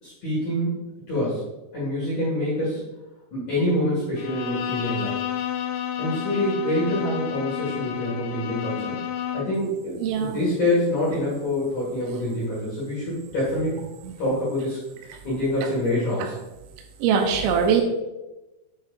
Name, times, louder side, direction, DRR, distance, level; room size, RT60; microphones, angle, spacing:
voice 1, 0.0-1.5 1.7-2.8 3.3-5.2 6.0-9.0 9.3-13.8 14.2-16.4, left 1 dB, 55° left, -7 dB, 2.3 m, -26 dB
Bowed string instrument, 4.2-9.6, left 10 dB, 85° left, 2.3 m, -30 dB
voice 2, 10.0-10.4 17.0-17.8, right 7 dB, 80° right, 3 dB, 2.7 m, -21 dB
7.5 x 7.4 x 2.5 m, 1.0 s
omnidirectional pair, 5.5 m